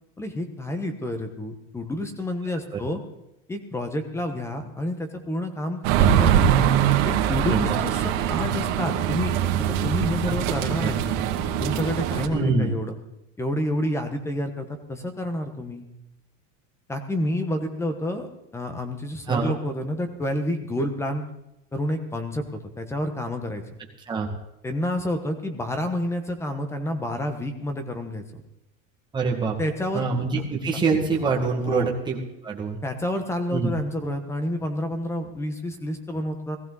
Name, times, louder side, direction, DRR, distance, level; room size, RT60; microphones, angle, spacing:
voice 1, 0.2-3.0 3.5-6.4 7.0-8.0 8.3-9.3 9.6-11.2 11.6-13.0 13.4-15.9 16.9-21.3 21.7-22.4 22.8-23.6 24.6-28.4 29.6-30.1 31.6-31.9 32.8-36.6, left 1 dB, 5° left, 7 dB, 1.2 m, -29 dB
sound 1, 5.8-12.3, right 9 dB, 75° right, 2.1 m, -22 dB
voice 2, 12.3-12.7 19.3-19.5 24.1-24.3 29.1-29.6 29.9-32.8 33.5-33.7, right 4 dB, 10° right, -1 dB, 2.0 m, -25 dB
18.5 x 15.0 x 4.1 m, 0.84 s
supercardioid pair, 170°, 39 cm